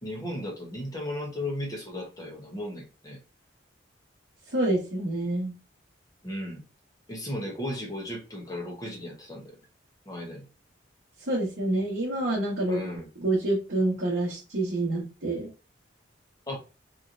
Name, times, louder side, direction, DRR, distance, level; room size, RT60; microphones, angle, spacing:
voice 1, 0.0-3.2 6.2-6.6 7.1-9.5 10.1-10.5 12.7-13.1 16.5-16.6, left 1 dB, 20° left, 0.9 m, -35 dB
voice 2, 4.5-5.5 11.3-12.8 13.2-15.5, right 1 dB, 60° right, 1.1 m, -27 dB
3.1 x 2.7 x 2.5 m
head